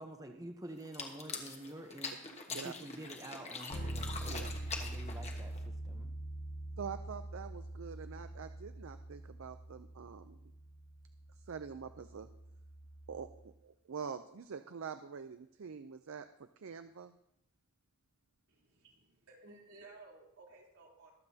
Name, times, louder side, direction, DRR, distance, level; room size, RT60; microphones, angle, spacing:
voice 1, 0.0-2.1 2.5-6.1, right 1 dB, 15° right, 4 dB, 0.7 m, -48 dB
sound 1, 0.8-5.7, left 4 dB, 30° left, 1.2 m, -44 dB
Bass guitar, 3.7-13.5, right 1 dB, 80° left, 1.3 m, -44 dB
voice 2, 6.8-10.4 11.5-12.3 13.1-16.3 16.6-17.1, right 6 dB, 65° right, 10 dB, 0.5 m, -45 dB
voice 3, 18.5-21.1, right 3 dB, 90° right, -3 dB, 3.4 m, -57 dB
22.5 x 7.7 x 2.8 m, 0.81 s
head